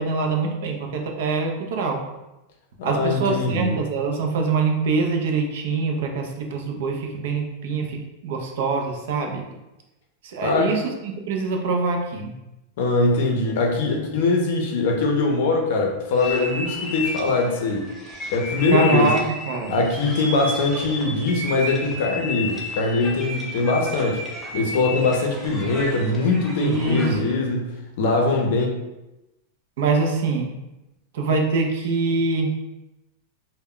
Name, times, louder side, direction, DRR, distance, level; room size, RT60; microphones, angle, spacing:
voice 1, 0.0-2.0 2.8-8.0 8.2-9.4 10.3-10.8 11.3-12.3 18.7-19.2 19.5-19.8 26.6-27.3 29.8-30.5 31.1-32.5, right 4 dB, 60° right, 3 dB, 0.4 m, -24 dB
voice 2, 2.8-3.8 10.4-10.7 12.8-17.9 18.3-19.1 19.7-24.2 24.5-28.7, left 3 dB, 55° left, 2 dB, 0.5 m, -22 dB
sound 1, 16.1-27.3, left 2 dB, 5° left, 0.4 m, -32 dB
2.1 x 2.0 x 3.6 m, 0.98 s
supercardioid pair, 175°, 0 cm